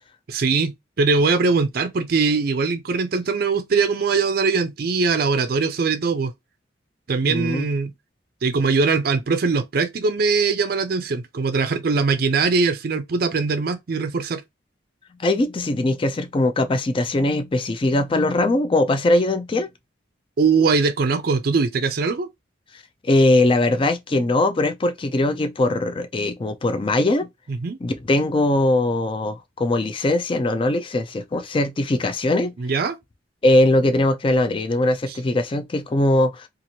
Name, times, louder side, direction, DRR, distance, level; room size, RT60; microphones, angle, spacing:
voice 1, 0.3-6.3 7.1-7.9 8.4-14.4 20.4-22.3 27.5-27.8 32.6-33.0, right 4 dB, 50° right, 0.4 m, -21 dB
voice 2, 7.2-7.7 15.2-19.7 23.0-27.3 27.8-32.5 33.4-36.5, left 2 dB, 25° left, 0.4 m, -20 dB
2.9 x 2.4 x 2.7 m
head